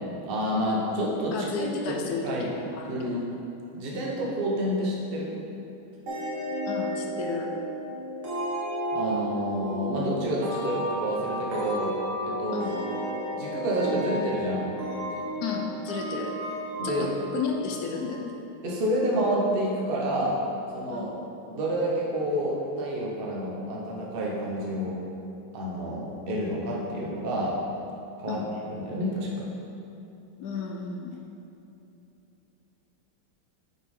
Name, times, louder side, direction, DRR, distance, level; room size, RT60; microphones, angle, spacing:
voice 1, 0.2-1.9 2.2-2.5 2.9-3.3 3.7-5.3 8.9-11.9 12.2-13.0 13.3-14.7 15.2-15.3 16.8-17.1 18.6-20.4 20.7-21.1 21.5-25.0 25.5-27.6 28.2-28.4 28.7-29.5, equal, 35° right, -3 dB, 0.9 m, -29 dB
voice 2, 1.3-2.9 3.9-4.1 6.7-7.5 12.5-12.8 15.4-16.3 16.8-18.3 20.9-21.1 28.3-28.5 30.4-31.3, left 5 dB, 85° left, 2 dB, 0.8 m, -33 dB
sound 1, 6.1-18.5, equal, 75° right, 2.3 m, -33 dB
6.2 x 5.4 x 5.4 m, 2.9 s
omnidirectional pair, 2.4 m